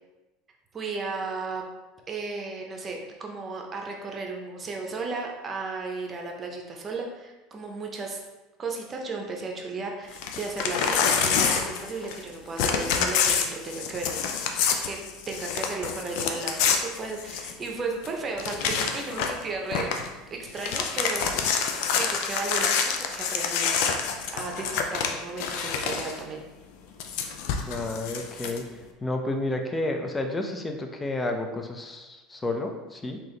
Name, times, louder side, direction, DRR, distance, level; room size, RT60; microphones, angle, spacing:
voice 1, 0.7-1.6 2.1-8.2 8.6-15.0 15.3-19.9 20.3-21.4 21.9-23.9 24.3-26.4, right 3 dB, 30° right, 1 dB, 0.8 m, -34 dB
Crumpling crinkling / Tearing, 10.1-12.3 12.6-17.7 18.0-18.1 18.4-19.4 19.7-20.1 20.4-26.2 27.0-28.6, left 6 dB, 65° left, 0.4 m, -27 dB
voice 2, 27.7-28.7 29.0-33.2, left 2 dB, 20° left, 4 dB, 0.6 m, -31 dB
3.7 x 2.9 x 3.2 m, 1.1 s
hypercardioid pair, 80°, 0 cm